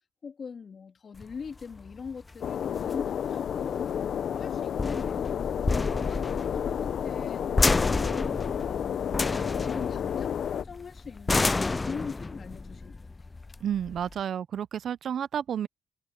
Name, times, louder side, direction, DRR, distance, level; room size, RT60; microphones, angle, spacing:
voice 1, 0.2-5.4 5.8-8.1 8.7-13.0, left 6 dB, 45° left, 3.1 m, -42 dB
sound 1, 1.2-14.2, left 3 dB, 25° left, 0.3 m, -30 dB
sound 2, 2.4-10.6, left 8 dB, 60° left, 0.9 m, -31 dB
voice 2, 13.6-15.7, right 9 dB, 60° right, 0.6 m, -31 dB
cardioid pair, 90°, 0 cm